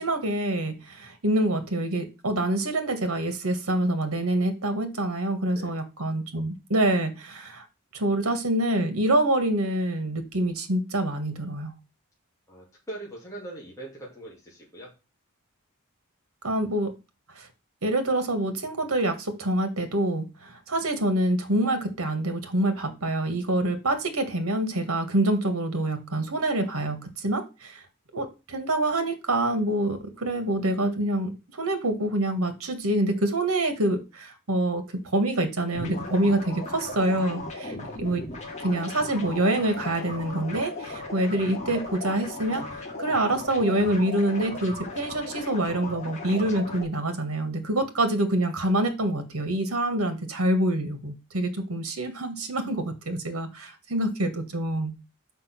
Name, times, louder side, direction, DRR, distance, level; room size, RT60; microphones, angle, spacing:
voice 1, 0.0-7.6 7.9-11.7 16.4-16.9 17.4-17.5 17.8-27.8 28.1-31.3 31.6-34.8 35.1-38.2 38.6-42.6 43.0-54.9, right 1 dB, 80° right, 8 dB, 1.7 m, -26 dB
voice 2, 12.5-14.9, right 2 dB, 15° left, -4 dB, 2.5 m, -41 dB
sound 1, 35.7-46.8, left 2 dB, 30° left, 2.0 m, -37 dB
6.2 x 5.5 x 5.9 m, 0.28 s
head